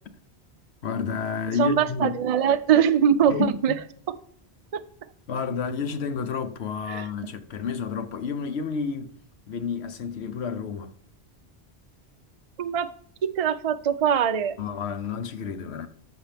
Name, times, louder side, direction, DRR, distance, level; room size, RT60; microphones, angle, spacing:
voice 1, 0.8-2.2 3.3-3.8 5.3-9.2 9.5-10.9 14.6-15.9, left 6 dB, 75° left, 1.1 m, -30 dB
voice 2, 1.6-3.7 4.7-4.8 6.9-7.1 12.6-12.9 13.2-14.6, right 8 dB, 55° right, 0.4 m, -22 dB
13.5 x 6.2 x 3.4 m
omnidirectional pair, 1.1 m